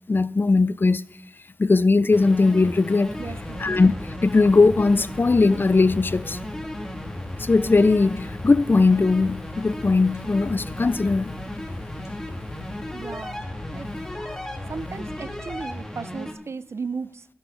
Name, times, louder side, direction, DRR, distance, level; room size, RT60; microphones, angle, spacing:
voice 1, 0.1-1.0 1.6-3.1 3.6-3.9 4.2-6.4 7.4-11.4, left 3 dB, 45° left, 0.5 m, -19 dB
sound 1, 2.1-16.3, equal, 10° left, 2.9 m, -35 dB
sound 2, 3.1-15.6, left 3 dB, 70° left, 6.2 m, -40 dB
voice 2, 3.2-3.6 12.9-13.9 14.7-17.3, right 5 dB, 70° right, 0.4 m, -35 dB
12.5 x 11.0 x 5.5 m
cardioid pair, 45°, 5 cm